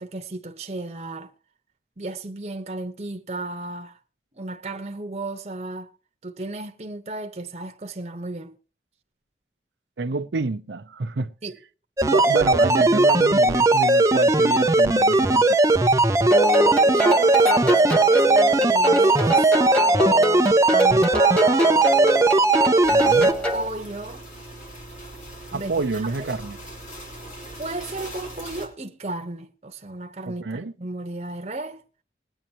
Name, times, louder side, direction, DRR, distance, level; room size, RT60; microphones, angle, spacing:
voice 1, 0.0-1.3 2.0-4.0 4.3-5.9 6.2-8.6 11.4-11.6 16.9-21.7 23.1-24.2 25.5-25.7 26.2-26.3 27.6-31.8, right 2 dB, 35° right, 1.0 m, -34 dB
voice 2, 10.0-11.3 12.0-15.6 22.9-23.3 25.5-26.6 30.3-30.7, right 3 dB, 90° right, 0.6 m, -28 dB
sound 1, 12.0-23.3, right 2 dB, 15° right, 0.5 m, -18 dB
sound 2, 16.3-23.7, equal, 5° left, 1.0 m, -26 dB
sound 3, 22.8-28.7, right 1 dB, 45° left, 3.4 m, -40 dB
21.0 x 8.8 x 2.9 m
head